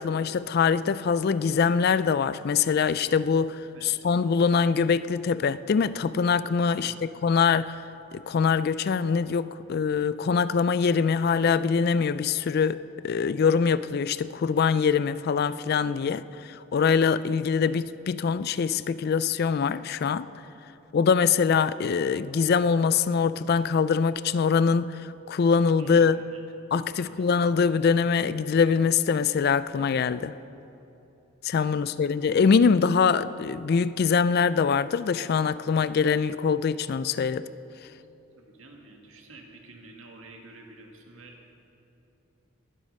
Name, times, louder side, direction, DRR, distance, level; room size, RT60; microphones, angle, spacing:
voice 1, 0.0-7.8 8.1-20.3 20.9-26.2 26.7-30.3 31.4-37.5, left 6 dB, 50° left, 0.3 m, -23 dB
voice 2, 6.7-7.1 25.8-26.4 26.9-27.3 31.7-32.2 38.4-41.4, right 2 dB, 70° right, 1.9 m, -50 dB
21.0 x 8.3 x 5.4 m
head